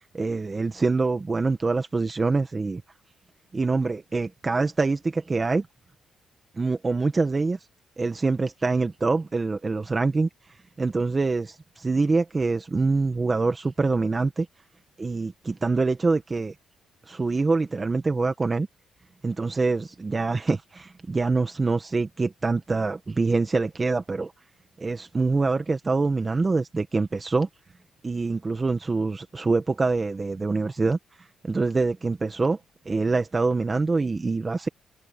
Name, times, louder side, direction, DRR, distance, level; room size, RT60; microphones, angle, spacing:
voice 1, 0.1-2.8 3.5-5.7 6.6-7.6 8.0-10.3 10.8-14.5 15.0-16.5 17.1-18.7 19.2-24.3 24.8-27.5 28.0-32.6 32.9-34.7, right 3 dB, 25° right, 1.6 m, -25 dB
cardioid pair, 90°, 0 cm